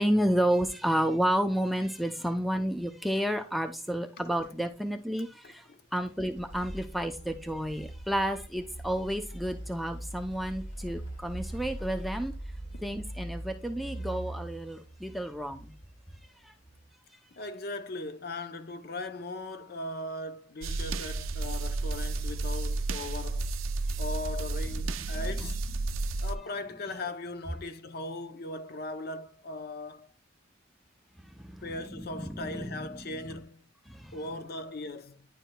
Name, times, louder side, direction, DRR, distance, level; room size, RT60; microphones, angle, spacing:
voice 1, 0.0-5.6 5.9-12.3 12.8-15.7 32.1-32.8 33.9-34.1, equal, ahead, 0.4 m, -30 dB
voice 2, 5.4-5.8 12.7-12.9 17.3-23.5 24.0-25.6 26.2-30.1 31.6-33.7 34.1-35.3, left 2 dB, 50° left, 0.6 m, -39 dB
sound 1, 6.0-16.8, right 1 dB, 70° left, 2.0 m, -42 dB
sound 2, 20.6-26.4, right 3 dB, 85° right, 0.5 m, -32 dB
9.9 x 4.7 x 2.2 m
head